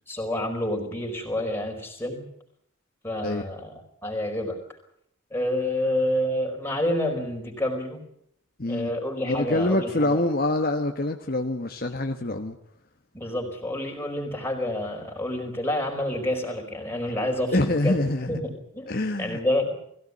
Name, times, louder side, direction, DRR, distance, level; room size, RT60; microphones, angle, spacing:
voice 1, 0.1-2.3 3.0-4.6 5.3-8.0 8.6-10.2 13.1-18.0 18.3-19.8, left 1 dB, 10° left, 1 dB, 4.8 m, -28 dB
voice 2, 8.6-8.9 9.2-12.5 17.5-18.4 18.9-19.4, left 2 dB, 45° left, 5 dB, 1.3 m, -25 dB
21.0 x 17.0 x 9.8 m, 0.72 s
head